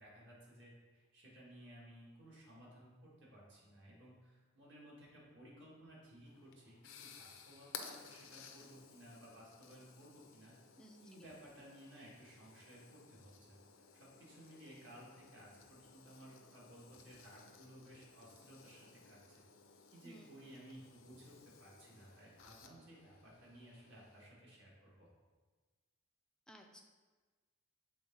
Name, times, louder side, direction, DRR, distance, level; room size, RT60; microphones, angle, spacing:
voice 1, 0.0-10.6 11.0-19.4 19.9-25.1, equal, 60° right, -5 dB, 1.9 m, -58 dB
sound 1, 6.3-24.3, left 6 dB, 65° left, 0.5 m, -57 dB
voice 2, 26.5-26.8, right 1 dB, 5° left, 2 dB, 0.4 m, -57 dB
7.0 x 3.9 x 3.8 m, 1.4 s
head